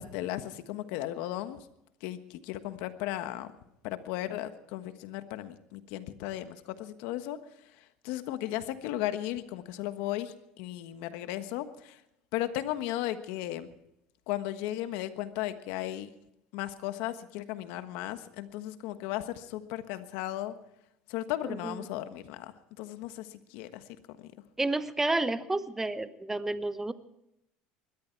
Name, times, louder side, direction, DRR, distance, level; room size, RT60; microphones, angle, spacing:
voice 1, 0.0-1.6 2.0-3.5 3.8-7.4 8.0-12.0 12.3-13.7 14.3-16.1 16.5-20.5 21.1-22.5 22.8-23.8 24.2-24.3, left 13 dB, 75° left, 10 dB, 1.3 m, -35 dB
voice 2, 21.4-21.9 24.6-26.9, right 2 dB, 10° right, 13 dB, 1.0 m, -31 dB
21.0 x 13.0 x 4.6 m, 0.82 s
supercardioid pair, 105°, 3 cm